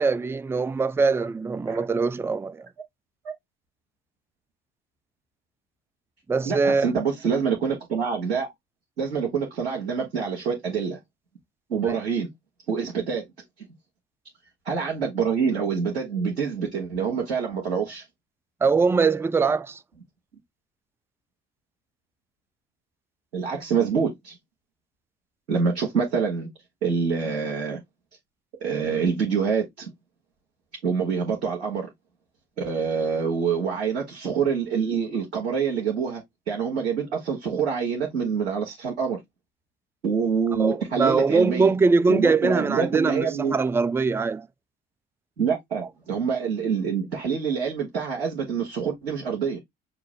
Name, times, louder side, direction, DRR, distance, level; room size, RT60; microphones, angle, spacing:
voice 1, 0.0-2.7 6.3-6.9 18.6-19.8 40.6-44.5 45.8-45.9, right 4 dB, 10° right, 0.3 m, -22 dB
voice 2, 6.5-8.5 9.0-11.0 11.7-12.3 12.7-13.2 14.7-18.0 23.3-24.3 25.5-26.5 26.8-27.8 28.6-29.9 30.8-31.9 32.6-36.2 36.5-39.2 40.0-41.7 42.1-43.6 45.4-49.6, right 6 dB, 90° right, 1.1 m, -26 dB
5.8 x 2.5 x 3.5 m
figure-of-eight pair, 50°, 31 cm